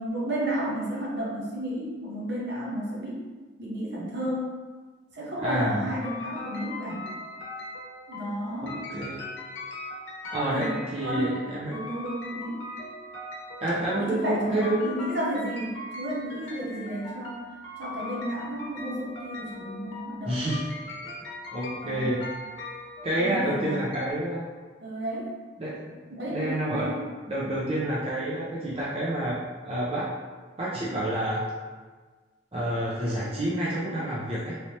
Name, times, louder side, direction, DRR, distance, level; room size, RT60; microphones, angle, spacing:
voice 1, 0.0-3.3 3.6-4.6 5.1-7.0 8.1-8.9 10.5-10.7 11.0-11.3 11.7-12.6 14.0-17.4 17.8-20.4 21.8-22.1 23.2-23.8 24.8-25.3 26.2-27.0, right 1 dB, 60° right, -4 dB, 0.8 m, -32 dB
voice 2, 5.4-5.8 8.6-9.3 10.3-11.8 13.6-14.9 20.3-20.6 21.5-22.2 23.0-24.5 25.6-26.0 26.3-26.9 27.3-29.4 29.6-30.1 30.6-31.4 32.5-34.6, right 1 dB, 30° right, -8 dB, 0.6 m, -28 dB
sound 1, 6.0-24.1, left 2 dB, 85° left, 0.7 m, -40 dB
3.2 x 2.9 x 2.8 m, 1.4 s
head